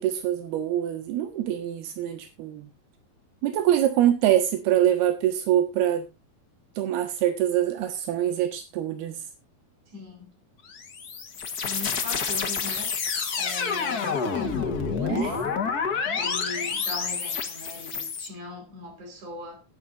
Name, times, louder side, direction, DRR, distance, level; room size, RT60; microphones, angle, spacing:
voice 1, 0.0-2.7 3.4-6.1 6.8-9.2 15.1-15.4, right 11 dB, 90° right, 3.4 m, -24 dB
voice 2, 9.9-10.3 11.6-12.9 13.4-15.6 16.1-19.6, left 2 dB, 50° right, 6.0 m, -39 dB
sound 1, 10.7-18.3, left 5 dB, 85° left, 0.8 m, -28 dB
19.5 x 8.7 x 2.6 m
omnidirectional pair, 4.4 m